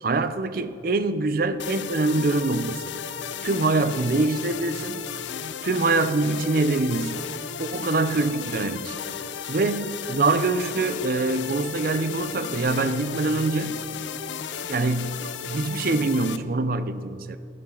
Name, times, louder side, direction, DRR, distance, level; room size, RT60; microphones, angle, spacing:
voice 1, 0.0-2.9 3.4-5.1 5.6-7.3 7.6-9.0 9.5-13.8 14.7-17.4, right 3 dB, 50° right, 12 dB, 0.5 m, -24 dB
sound 1, 1.6-16.4, left 7 dB, 75° left, 0.5 m, -34 dB
14.0 x 12.0 x 3.8 m, 2.4 s
head